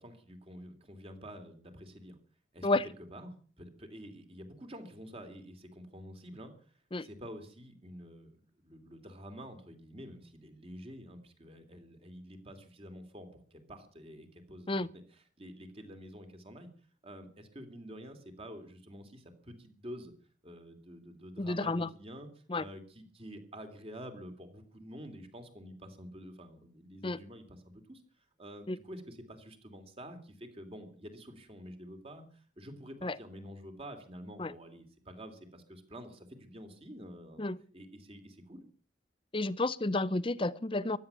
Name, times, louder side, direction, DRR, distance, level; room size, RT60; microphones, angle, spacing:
voice 1, 0.0-2.2 2.5-8.3 8.6-16.7 17.0-20.1 20.4-37.5 37.7-38.7, equal, 30° right, 3.0 m, -48 dB
voice 2, 21.4-21.9 22.5-22.6 27.0-27.2 28.7-28.8 33.0-33.2 34.4-34.5 37.4-37.6 39.3-41.0, left 2 dB, 25° left, 0.7 m, -31 dB
16.0 x 12.0 x 7.1 m
head